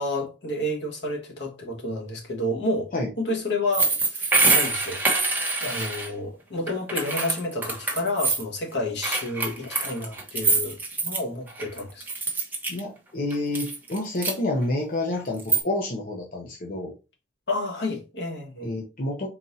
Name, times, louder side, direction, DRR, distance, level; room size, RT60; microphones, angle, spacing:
voice 1, 0.0-2.9 3.2-5.0 5.6-12.0 17.5-18.7, left 1 dB, 70° left, 1.5 m, -30 dB
sound 1, 3.7-6.1 6.7-8.4 9.0-11.2 11.5-12.8 13.3-14.3 15.2-15.6, right 3 dB, 10° right, 1.0 m, -25 dB
voice 2, 12.7-16.9 18.6-19.3, left 2 dB, 50° left, 0.7 m, -29 dB
4.4 x 3.9 x 2.7 m
head